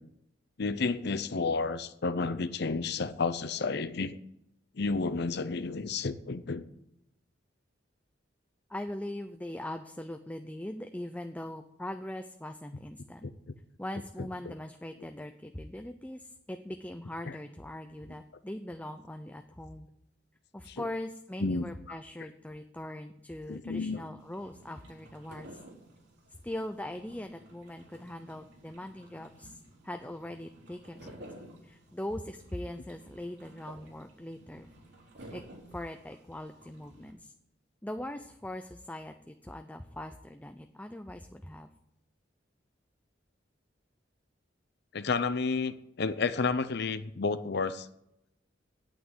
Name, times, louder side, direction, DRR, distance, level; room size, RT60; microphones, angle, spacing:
voice 1, 0.6-4.2 4.8-6.6 13.2-13.3 14.5-14.6 17.3-17.4 20.7-20.9 21.4-21.6 23.5-24.0 44.9-47.9, left 4 dB, 60° left, 12 dB, 0.7 m, -31 dB
voice 2, 8.7-13.3 13.8-19.9 20.5-25.6 26.4-31.2 31.6-34.7 35.3-35.4 35.7-37.3 37.8-41.7, left 1 dB, 10° left, 6 dB, 0.6 m, -41 dB
sound 1, 24.2-37.1, right 1 dB, 65° right, 4.2 m, -53 dB
9.2 x 8.6 x 9.5 m, 0.81 s
head